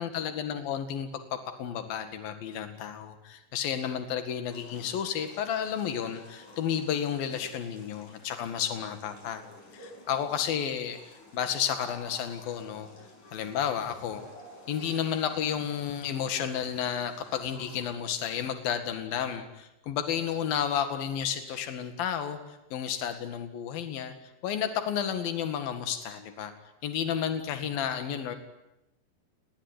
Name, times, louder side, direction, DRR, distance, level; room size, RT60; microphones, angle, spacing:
voice 1, 0.0-9.4 9.7-11.0 11.3-12.9 13.3-14.2 14.7-24.1 24.4-26.5 26.8-28.4, left 8 dB, 80° left, 8 dB, 3.8 m, -32 dB
sound 1, 4.5-17.9, left 1 dB, 55° left, 7.4 m, -52 dB
29.0 x 20.5 x 10.0 m, 0.90 s
omnidirectional pair, 4.1 m